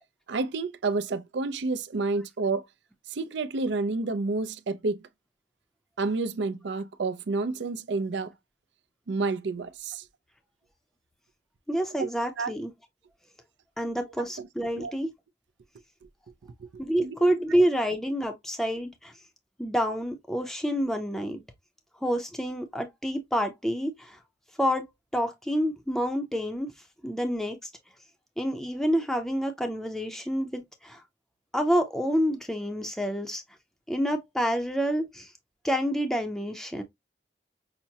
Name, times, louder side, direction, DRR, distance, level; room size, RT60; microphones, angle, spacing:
voice 1, 0.3-2.7 3.1-5.0 6.0-8.3 9.1-10.1 12.0-12.1 12.4-12.5 14.4-14.5 14.8-14.9 16.6-16.7 17.0-17.2, right 3 dB, 75° right, 0.5 m, -29 dB
voice 2, 11.7-12.7 13.8-15.1 16.8-19.1 19.6-21.4 22.0-24.2 24.6-24.9 25.1-26.7 27.0-27.7 28.4-31.0 31.5-33.4 33.9-35.3 35.6-36.8, equal, ahead, 0.5 m, -28 dB
5.8 x 2.0 x 2.7 m
head